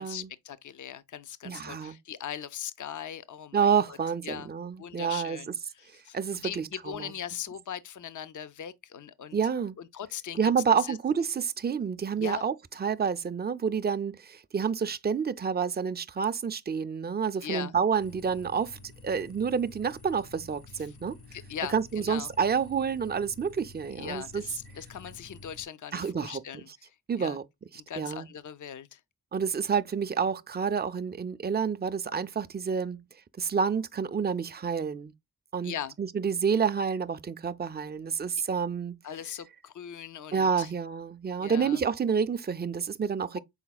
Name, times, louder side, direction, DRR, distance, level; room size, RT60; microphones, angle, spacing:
voice 1, 0.0-4.0 4.2-4.5 4.8-9.4 9.8-10.5 10.8-11.0 12.2-12.4 17.4-17.7 20.9-21.0 21.3-22.3 24.0-26.7 27.2-27.4 27.9-29.0 35.6-35.9 39.0-40.7 41.4-41.8, left 9 dB, 50° left, 0.5 m, -40 dB
voice 2, 1.4-2.0 3.5-5.5 6.1-7.1 9.3-9.8 10.4-18.8 19.0-21.2 21.7-24.4 25.9-26.4 27.1-27.4 27.7-28.3 29.3-33.1 33.4-35.1 35.5-39.0 40.3-43.4, right 6 dB, 25° right, 0.4 m, -29 dB
sound 1, 18.0-25.7, left 2 dB, 75° left, 1.5 m, -50 dB
5.7 x 4.1 x 2.2 m
wide cardioid pair, 65°, 39 cm